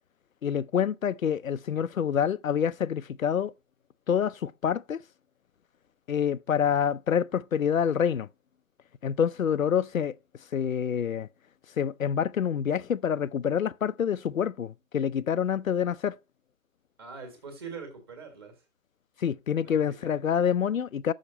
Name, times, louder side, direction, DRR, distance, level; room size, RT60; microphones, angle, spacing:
voice 1, 0.4-3.5 4.1-5.0 6.1-8.3 9.0-10.1 10.5-11.3 11.8-16.2 19.2-21.1, left 8 dB, 80° left, 0.6 m, -27 dB
voice 2, 17.0-18.6 19.6-20.2, right 5 dB, 20° right, 1.6 m, -43 dB
6.6 x 5.0 x 6.9 m
figure-of-eight pair, 160°, 40 cm